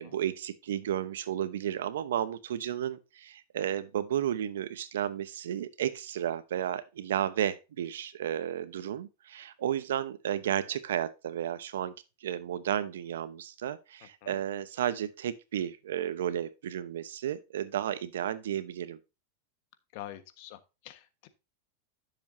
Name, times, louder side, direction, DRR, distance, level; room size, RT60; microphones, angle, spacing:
voice 1, 0.0-11.9 12.2-19.0, right 10 dB, 85° right, 0.9 m, -33 dB
voice 2, 19.9-21.3, left 13 dB, 60° left, 1.3 m, -46 dB
10.5 x 7.1 x 2.7 m
supercardioid pair, 125°, 0 cm